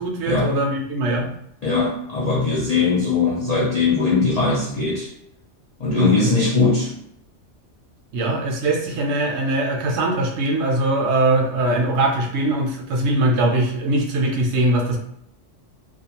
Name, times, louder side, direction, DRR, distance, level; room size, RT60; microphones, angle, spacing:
voice 1, 0.0-1.3 5.9-6.3 8.1-15.0, right 2 dB, 70° right, 1 dB, 0.8 m, -21 dB
voice 2, 1.6-5.1 5.8-6.9, left 4 dB, 65° left, -5 dB, 0.4 m, -20 dB
2.4 x 2.2 x 2.8 m, 0.74 s
omnidirectional pair, 1.3 m